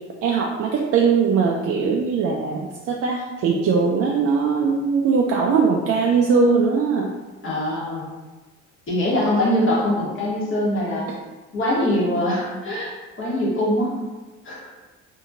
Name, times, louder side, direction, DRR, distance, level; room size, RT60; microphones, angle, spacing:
voice 1, 0.2-7.1, right 5 dB, 40° right, -1 dB, 0.4 m, -20 dB
voice 2, 7.4-8.1 8.9-11.1 11.5-12.9 13.2-13.9 14.4-14.6, left 1 dB, 35° left, -6 dB, 1.3 m, -22 dB
2.7 x 2.7 x 2.5 m, 1.2 s
hypercardioid pair, 65°, 35 cm